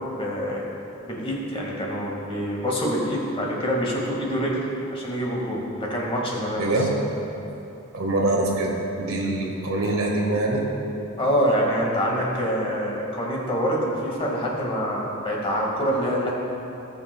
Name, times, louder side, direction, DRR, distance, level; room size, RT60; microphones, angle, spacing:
voice 1, 0.1-0.6 1.0-6.7 9.2-9.3 11.2-16.3, equal, 25° left, -3 dB, 1.8 m, -26 dB
voice 2, 6.6-7.0 7.9-11.0, right 2 dB, 80° right, -1 dB, 1.6 m, -24 dB
19.0 x 6.8 x 2.3 m, 3.0 s
head